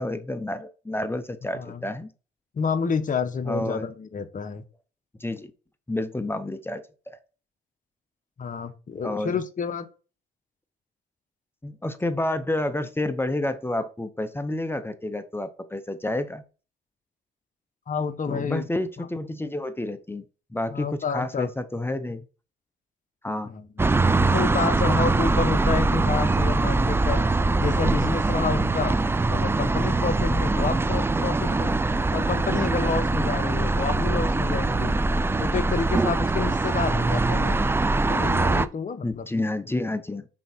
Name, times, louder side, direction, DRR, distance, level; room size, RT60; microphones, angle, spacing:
voice 1, 0.0-2.1 3.4-3.9 5.2-5.5 5.9-7.2 9.0-9.3 11.6-16.4 18.3-20.2 20.5-22.3 23.2-23.5 39.0-40.3, left 1 dB, 10° left, 10 dB, 0.7 m, -29 dB
voice 2, 1.5-1.8 2.5-4.6 8.4-9.9 17.9-18.7 19.0-19.1 20.7-21.5 23.4-27.2 27.6-29.0 29.3-31.8 32.1-34.9 35.4-37.6 38.1-39.3, left 5 dB, 40° left, 8 dB, 1.1 m, -29 dB
sound 1, 23.8-38.7, right 3 dB, 10° right, 0.3 m, -23 dB
6.1 x 4.7 x 4.3 m, 0.34 s
cardioid pair, 90°, 20 cm